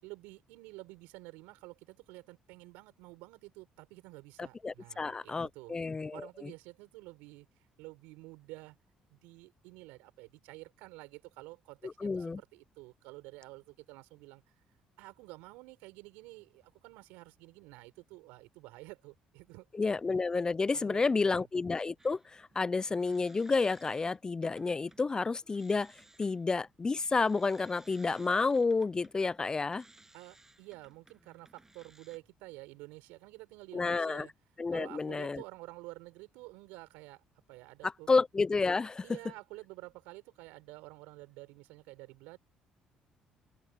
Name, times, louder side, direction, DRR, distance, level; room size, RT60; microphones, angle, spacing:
voice 1, 0.0-5.7 6.1-8.8 9.1-14.4 15.0-19.9 20.7-21.5 30.1-34.3 34.7-38.1 39.0-42.4, right 22 dB, 85° right, 5.7 m, -50 dB
voice 2, 4.4-6.5 11.8-12.4 19.7-25.9 26.2-29.8 33.7-34.3 34.6-35.4 37.8-39.0, left 4 dB, 25° left, 0.4 m, -30 dB
sound 1, 22.0-25.1 25.4-32.2, right 2 dB, 15° right, 6.8 m, -61 dB
open air
supercardioid pair, 65°, 3 cm